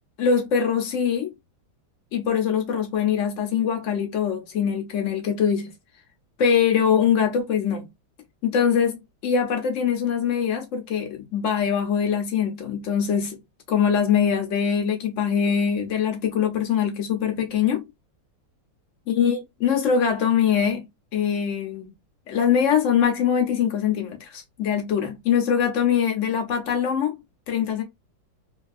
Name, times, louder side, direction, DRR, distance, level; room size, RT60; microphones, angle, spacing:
voice 1, 0.2-1.3 2.1-5.7 6.4-7.9 8.4-13.4 13.7-17.8 19.1-20.8 21.1-21.9 22.3-27.2 27.5-27.8, left 7 dB, 70° left, 0.7 m, -23 dB
3.4 x 2.3 x 2.5 m
omnidirectional pair, 2.3 m